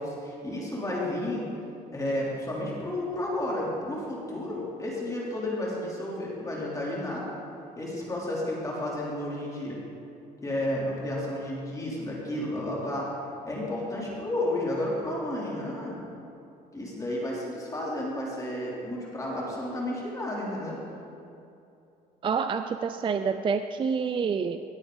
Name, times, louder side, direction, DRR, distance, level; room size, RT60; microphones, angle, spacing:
voice 1, 0.0-1.5 1.9-7.2 7.8-9.8 10.4-13.1 13.4-16.0 16.7-20.8, left 1 dB, 20° left, -5 dB, 3.0 m, -32 dB
voice 2, 22.2-24.6, right 5 dB, 30° right, 9 dB, 0.4 m, -28 dB
17.5 x 8.2 x 3.9 m, 2.7 s
cardioid pair, 110°, 17 cm